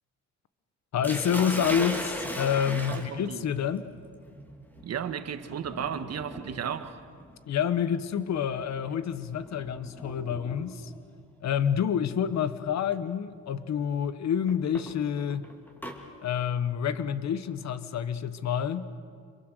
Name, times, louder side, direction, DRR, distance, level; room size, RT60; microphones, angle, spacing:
voice 1, 0.9-3.9 7.5-10.9 11.4-15.5 16.2-18.9, left 8 dB, 65° left, 1.2 m, -28 dB
Sink (filling or washing), 1.0-11.0 12.1-12.4 12.9-13.0 14.5-16.0, equal, 5° left, 3.0 m, -39 dB
voice 2, 2.7-3.4 4.8-7.0, right 8 dB, 55° right, 1.4 m, -34 dB
27.0 x 23.0 x 6.7 m
cardioid pair, 90°, 30 cm